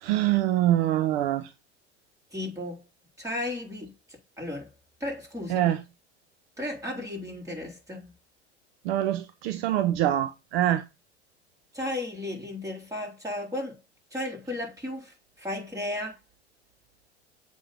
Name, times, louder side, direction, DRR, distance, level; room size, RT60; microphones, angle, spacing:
voice 1, 0.0-1.5 5.5-5.8 8.8-10.8, right 13 dB, 60° right, 0.9 m, -24 dB
voice 2, 2.3-2.9 3.2-4.7 5.0-5.7 6.6-8.1 11.7-13.8 14.1-16.2, left 1 dB, 10° right, 3.9 m, -34 dB
7.7 x 3.8 x 6.6 m
hypercardioid pair, 85°, 33 cm